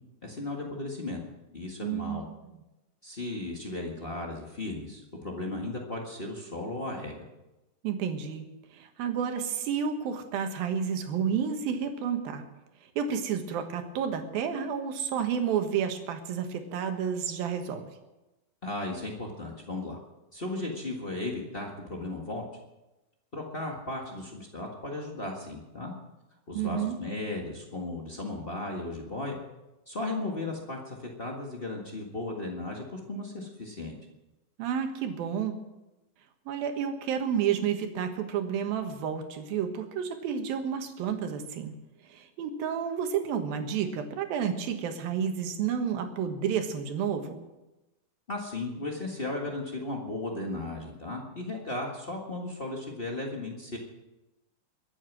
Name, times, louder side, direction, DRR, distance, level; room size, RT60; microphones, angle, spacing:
voice 1, 0.2-1.2 1.5-2.3 3.0-7.2 18.6-20.0 20.3-22.5 23.3-25.9 26.5-29.4 29.9-33.9 48.3-53.8, left 2 dB, 60° left, -1 dB, 0.5 m, -35 dB
voice 2, 1.8-2.2 7.8-8.5 8.7-12.4 13.0-17.9 26.5-27.0 34.6-35.6 36.5-41.7 42.1-47.4, right 7 dB, 75° right, 6 dB, 3.1 m, -30 dB
22.5 x 9.0 x 6.2 m, 1.0 s
omnidirectional pair, 4.2 m